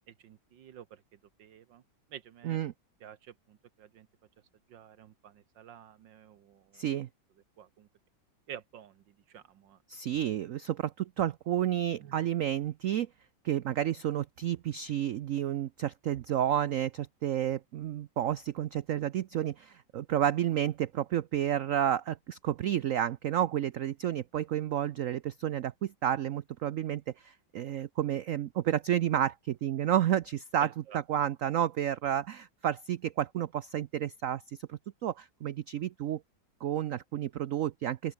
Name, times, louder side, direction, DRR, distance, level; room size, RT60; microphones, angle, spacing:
voice 1, 0.1-1.8 2.1-2.6 3.0-4.1 4.7-6.9 7.6-7.9 8.5-9.8 12.0-12.2 30.6-31.0, right 9 dB, 70° right, 1.7 m, -50 dB
voice 2, 6.7-7.1 9.9-13.1 13.4-30.7 31.1-34.4 34.7-36.2 36.6-38.1, right 11 dB, 85° right, 0.7 m, -31 dB
open air
omnidirectional pair, 2.1 m